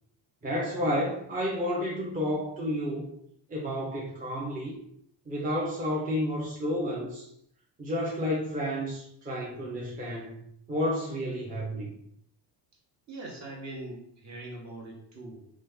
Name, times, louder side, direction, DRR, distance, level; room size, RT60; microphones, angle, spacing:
voice 1, 0.4-3.1 3.5-4.8 5.3-7.3 7.8-10.4 10.7-12.0, equal, 20° right, -5 dB, 0.6 m, -31 dB
voice 2, 13.1-15.5, right 2 dB, 40° right, -2 dB, 1.0 m, -42 dB
3.0 x 2.4 x 3.4 m, 0.69 s
cardioid pair, 140°, 42 cm